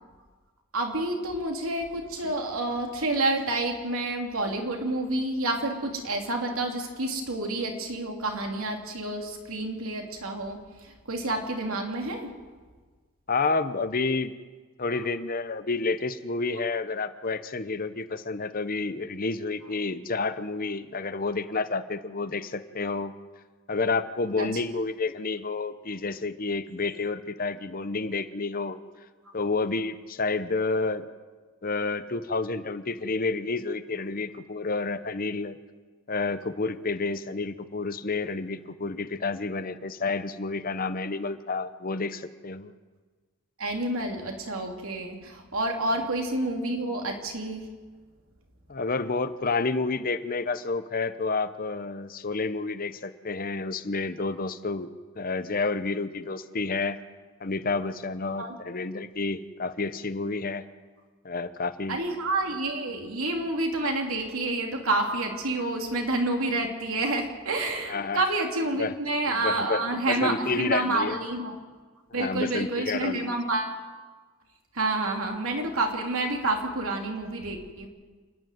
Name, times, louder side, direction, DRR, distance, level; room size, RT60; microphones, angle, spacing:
voice 1, 0.7-12.3 24.4-24.5 43.6-47.6 58.4-58.6 61.9-71.6 72.1-73.8 74.7-77.9, right 2 dB, 70° right, 2 dB, 3.0 m, -29 dB
voice 2, 13.3-14.3 14.8-23.1 23.7-28.8 29.3-31.0 31.6-35.6 36.1-42.7 48.7-54.9 55.2-57.0 57.4-60.6 61.2-62.0 67.9-68.2 68.8-68.9 69.3-71.2 72.1-73.3, left 3 dB, 40° left, 12 dB, 0.8 m, -30 dB
28.5 x 10.5 x 9.3 m, 1.4 s
head